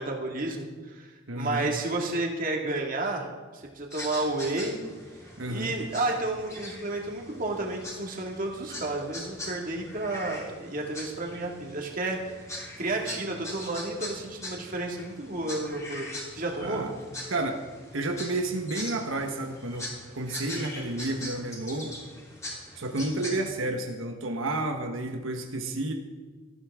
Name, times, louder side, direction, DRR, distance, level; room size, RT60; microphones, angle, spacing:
voice 1, 0.0-3.3 3.5-4.8 5.5-12.4 12.8-16.1 16.3-16.9, right 2 dB, 45° right, 0 dB, 2.2 m, -31 dB
voice 2, 1.3-1.7 5.4-5.7 16.6-16.9 17.3-17.6 17.9-21.9 22.7-25.9, right 2 dB, 90° right, 4 dB, 1.2 m, -31 dB
sound 1, 3.9-23.5, left 1 dB, 15° left, 3.3 m, -42 dB
18.0 x 14.0 x 3.7 m, 1.4 s
head